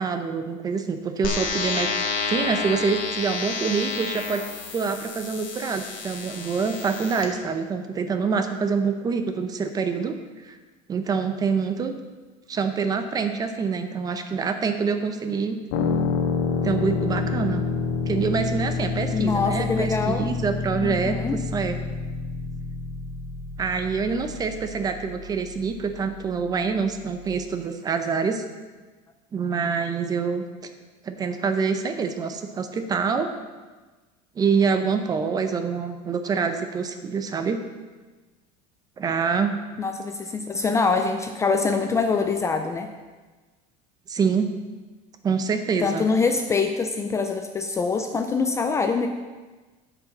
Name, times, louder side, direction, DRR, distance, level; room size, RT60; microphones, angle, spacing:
voice 1, 0.0-1.9 2.3-4.4 4.7-10.1 10.4-10.6 10.9-11.9 12.5-15.6 16.6-17.6 18.1-21.2 21.5-21.7 23.6-28.4 29.3-30.4 31.0-33.3 34.4-37.6 39.0-39.6 44.1-44.5 45.2-46.1, right 5 dB, 20° right, 8 dB, 0.8 m, -26 dB
sound 1, 1.2-7.2, left 5 dB, 55° left, 1.8 m, -30 dB
sound 2, 15.7-27.3, left 5 dB, 80° left, 1.5 m, -29 dB
voice 2, 19.1-20.3 20.8-21.4 39.8-42.9 45.8-49.1, left 4 dB, 15° left, 6 dB, 0.5 m, -24 dB
9.6 x 5.6 x 7.2 m, 1.3 s
cardioid pair, 155°, 17 cm